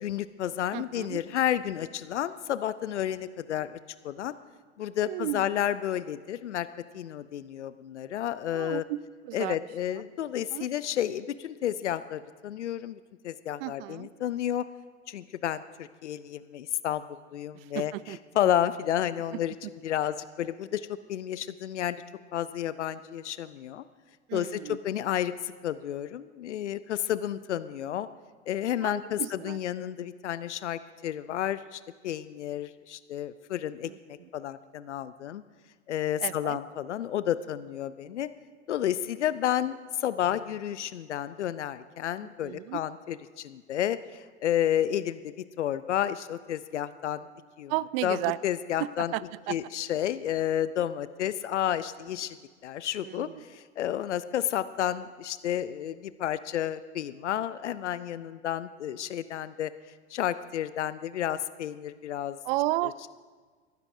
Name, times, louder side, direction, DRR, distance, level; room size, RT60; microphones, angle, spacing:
voice 1, 0.0-3.8 4.0-4.3 4.8-6.7 6.9-8.8 9.3-14.7 15.1-19.5 19.8-22.0 22.3-23.8 24.3-28.1 28.5-35.4 35.9-38.3 38.7-47.3 47.6-47.7 48.0-49.1 49.5-52.4 52.6-59.7 60.1-62.4, left 11 dB, 85° left, 15 dB, 0.5 m, -31 dB
voice 2, 0.7-1.2 5.0-5.5 8.5-9.0 9.2-9.7 10.5-10.7 13.6-14.1 17.5-18.2 24.3-24.8 28.8-29.6 33.8-34.3 36.2-36.6 42.4-42.8 47.7-48.4 48.8-49.5 53.0-53.4 62.4-62.9, right 18 dB, 55° right, 19 dB, 0.5 m, -33 dB
23.5 x 12.5 x 2.7 m, 1.5 s
hypercardioid pair, 85°, 34 cm